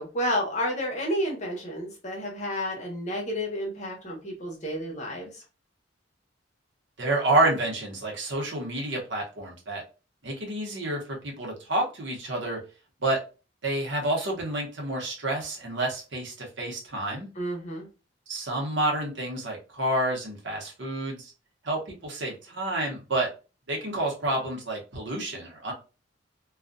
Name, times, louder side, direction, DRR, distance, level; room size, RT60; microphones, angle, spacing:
voice 1, 0.0-5.4 17.4-17.9, equal, 40° left, -1 dB, 0.8 m, -31 dB
voice 2, 7.0-9.8 10.2-12.6 13.0-13.2 13.6-17.3 18.3-21.3 21.6-23.3 23.7-25.7, right 2 dB, 65° right, -1 dB, 0.9 m, -29 dB
2.4 x 2.2 x 2.5 m, 0.32 s
head